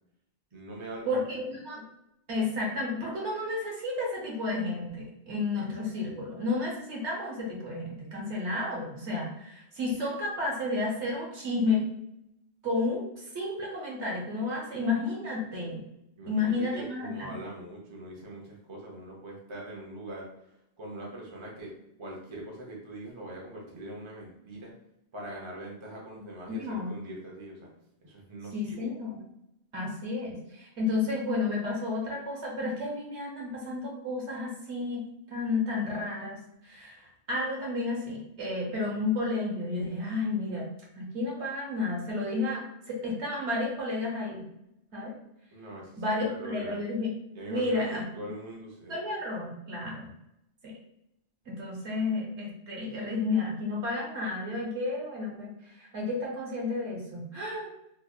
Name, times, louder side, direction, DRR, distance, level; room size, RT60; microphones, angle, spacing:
voice 1, 0.5-1.2 16.2-21.7 22.0-24.7 25.1-27.7 28.0-28.9 45.5-46.9 47.3-47.8 48.1-49.0, right 1 dB, 30° right, -2 dB, 0.8 m, -42 dB
voice 2, 1.1-1.8 2.3-11.9 12.6-13.0 13.3-15.9 16.3-17.4 26.5-26.9 28.5-29.2 29.7-37.0 37.3-40.7 40.9-44.5 44.9-45.1 46.0-47.1 47.5-48.1 48.9-50.1 50.6-50.8 51.5-57.7, left 3 dB, 85° right, -2 dB, 1.3 m, -31 dB
3.5 x 3.1 x 2.3 m, 0.83 s
omnidirectional pair, 1.1 m